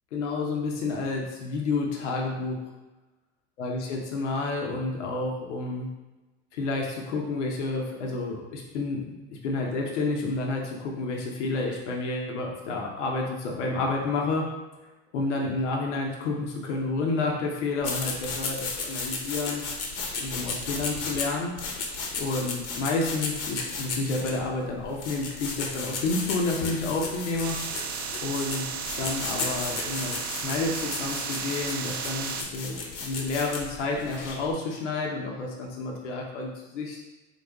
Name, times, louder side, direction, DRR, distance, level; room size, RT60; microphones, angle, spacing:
voice 1, 0.1-2.6 3.6-5.9 6.5-14.5 15.1-19.6 20.2-21.5 22.2-27.6 28.2-28.7 29.0-37.0, left 3 dB, 85° left, 0 dB, 0.8 m, -30 dB
sound 1, 17.8-34.5, left 4 dB, 40° left, 0.8 m, -34 dB
sound 2, 27.4-32.4, right 7 dB, 65° right, 0.5 m, -34 dB
4.0 x 2.4 x 3.4 m, 1.1 s
hypercardioid pair, 95°, 35 cm